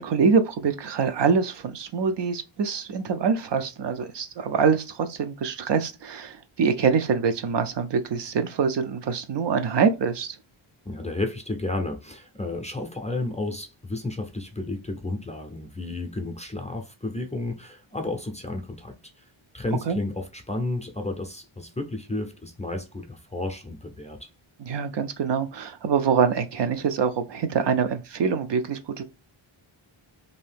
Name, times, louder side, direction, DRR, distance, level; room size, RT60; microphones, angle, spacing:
voice 1, 0.0-10.4 19.9-20.0 24.6-29.0, right 6 dB, 60° right, 0.5 m, -24 dB
voice 2, 10.8-19.2 19.5-24.3, left 2 dB, 15° left, 0.4 m, -32 dB
2.7 x 2.6 x 3.3 m
wide cardioid pair, 145°, 49 cm